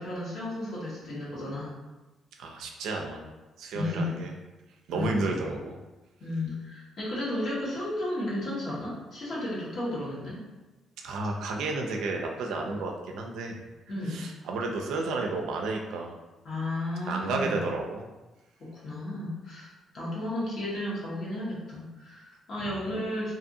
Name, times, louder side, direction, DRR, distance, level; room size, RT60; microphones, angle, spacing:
voice 1, 0.0-1.7 3.7-4.2 4.9-5.3 6.2-10.4 13.9-14.3 16.4-17.6 18.6-19.7 19.9-23.3, left 1 dB, 60° left, -6 dB, 1.1 m, -33 dB
voice 2, 2.4-3.2 3.6-4.3 4.9-5.8 11.0-13.6 14.1-16.2 17.1-18.1 22.6-22.8, right 3 dB, 80° right, 2 dB, 0.4 m, -32 dB
2.6 x 2.5 x 2.6 m, 1.1 s
cardioid pair, 90°, 0 cm